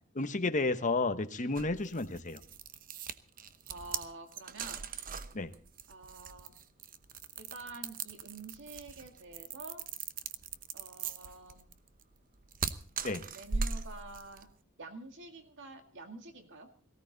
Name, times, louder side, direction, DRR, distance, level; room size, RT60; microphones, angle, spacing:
voice 1, 0.1-2.4 5.3-5.5 13.0-13.2, left 3 dB, 35° left, 9 dB, 1.1 m, -31 dB
sound 1, 1.6-14.5, right 5 dB, 40° right, 0.8 m, -40 dB
voice 2, 3.7-4.9 5.9-6.6 7.4-9.9 10.7-11.7 13.3-14.5 14.8-16.7, right 3 dB, 60° right, 6 dB, 2.1 m, -48 dB
18.0 x 16.0 x 4.0 m, 0.43 s
head